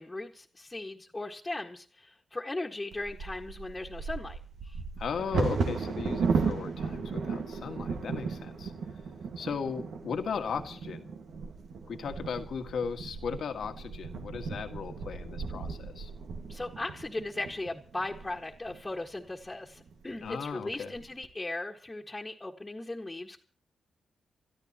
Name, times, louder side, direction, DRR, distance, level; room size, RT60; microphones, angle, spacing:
voice 1, 0.0-4.8 16.5-23.4, left 2 dB, 20° left, -1 dB, 1.7 m, -38 dB
Bird vocalization bird call bird song / Wind / Thunder, 2.9-18.8 19.4-19.5 19.9-20.3 20.7-21.2, right 4 dB, 75° right, 1.8 m, -35 dB
voice 2, 5.0-8.7 9.4-11.1 11.9-16.1 20.2-20.9, left 6 dB, 75° left, 6 dB, 1.8 m, -36 dB
28.0 x 13.0 x 3.0 m, 0.42 s
cardioid pair, 55°, 0 cm